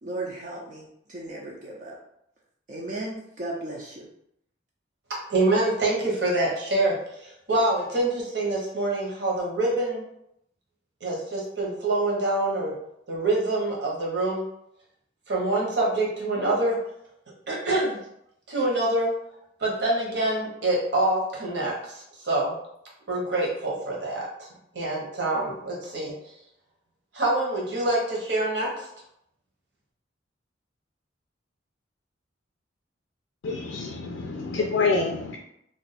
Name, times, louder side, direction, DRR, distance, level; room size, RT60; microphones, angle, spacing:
voice 1, 0.0-2.0 2.7-4.1, right 2 dB, 40° right, -3 dB, 0.5 m, -35 dB
voice 2, 5.3-10.0 11.0-12.7 13.1-14.4 15.3-16.8 17.5-18.0 18.5-19.1 19.6-21.7 22.2-22.5 23.1-24.3 24.7-26.1 27.1-28.7, right 2 dB, 60° right, -3 dB, 1.1 m, -25 dB
voice 3, 33.4-35.4, left 4 dB, 80° left, 1 dB, 0.4 m, -27 dB
2.5 x 2.3 x 4.0 m, 0.76 s
head